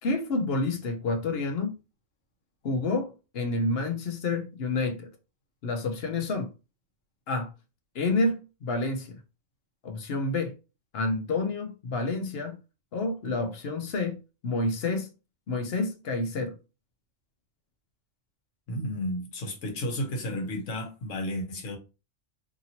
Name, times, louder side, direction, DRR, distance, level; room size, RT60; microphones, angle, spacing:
voice 1, 0.0-1.8 2.6-5.1 5.6-6.5 7.3-7.5 7.9-9.2 9.8-10.5 10.9-12.6 12.9-15.1 15.5-16.6, left 3 dB, 60° left, 0.8 m, -29 dB
voice 2, 18.7-21.8, left 1 dB, 85° left, 1.2 m, -32 dB
2.8 x 2.8 x 2.8 m
omnidirectional pair, 1.3 m